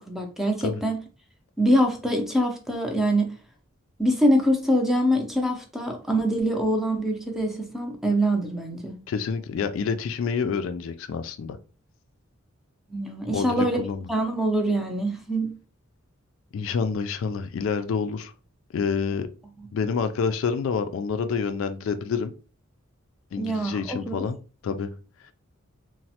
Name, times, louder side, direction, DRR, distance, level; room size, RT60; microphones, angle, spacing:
voice 1, 0.1-1.0 1.6-3.3 4.0-9.0 12.9-13.8 14.1-15.5 23.4-24.3, equal, ahead, 0.5 m, -24 dB
voice 2, 9.1-11.6 13.3-14.1 16.5-18.3 18.7-19.3 19.7-22.3 23.3-24.4 24.6-24.9, left 5 dB, 70° left, 0.3 m, -28 dB
3.0 x 2.1 x 2.7 m
head